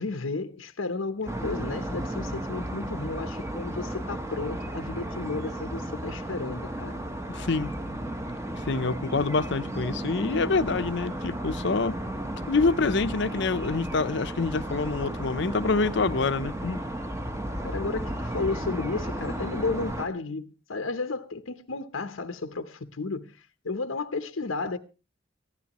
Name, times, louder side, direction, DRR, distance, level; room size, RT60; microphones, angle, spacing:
voice 1, 0.0-7.0 13.7-13.8 17.6-24.8, left 3 dB, 90° left, 0.9 m, -33 dB
sound 1, 1.3-20.1, right 1 dB, 15° right, 1.0 m, -34 dB
voice 2, 7.3-7.7 8.7-12.0 12.5-16.8, left 3 dB, 60° left, 0.7 m, -26 dB
21.0 x 15.0 x 3.0 m
head